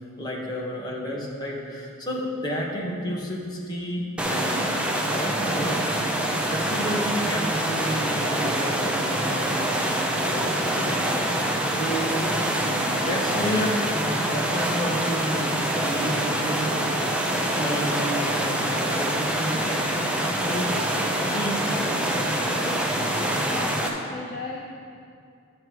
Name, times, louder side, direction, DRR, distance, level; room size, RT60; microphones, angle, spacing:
voice 1, 0.2-4.7 5.0-5.8 6.3-10.9 11.7-17.0 17.5-19.9 20.4-20.8 21.2-22.6, equal, 20° left, -4 dB, 1.4 m, -31 dB
sound 1, 4.2-23.9, right 1 dB, 5° right, 0.6 m, -25 dB
voice 2, 23.1-24.6, left 3 dB, 40° left, -3 dB, 0.7 m, -37 dB
12.0 x 6.6 x 4.7 m, 2.4 s
head